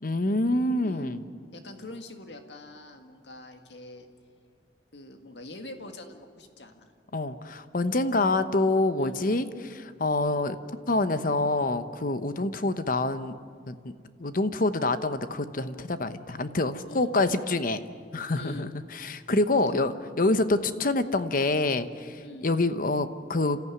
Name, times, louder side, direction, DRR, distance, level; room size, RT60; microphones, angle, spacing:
voice 1, 0.0-1.2 7.1-10.6 10.9-13.3 13.7-13.8 14.2-17.8 18.1-18.7 19.0-19.9 20.2-22.2 22.4-23.6, left 2 dB, 50° left, 11 dB, 1.0 m, -26 dB
voice 2, 0.8-1.2 1.5-4.1 4.9-6.9 7.9-8.1 9.0-9.2 16.8-17.1 18.3-18.7 19.5-19.8 20.2-20.4 22.2-22.5, left 1 dB, 75° left, 6 dB, 2.0 m, -44 dB
28.5 x 14.0 x 9.6 m, 2.1 s
head